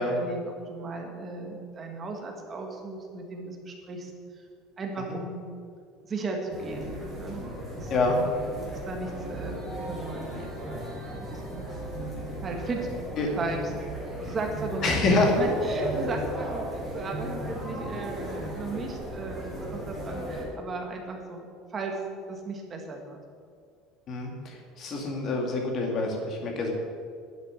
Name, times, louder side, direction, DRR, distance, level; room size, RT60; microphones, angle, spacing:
voice 1, 0.0-4.1 4.4-4.5 4.8-5.4 6.1-7.5 7.7-8.3 8.7-11.6 12.4-12.9 13.4-13.7 14.2-21.5 21.7-21.9 22.3-23.2, right 3 dB, 20° right, 2 dB, 1.7 m, -36 dB
sound 1, 6.5-20.4, equal, ahead, 4.1 m, -35 dB
voice 2, 14.8-15.3 24.1-26.7, left 3 dB, 30° left, 1 dB, 2.3 m, -26 dB
11.5 x 7.6 x 9.7 m, 2.2 s
cardioid pair, 180°, 0 cm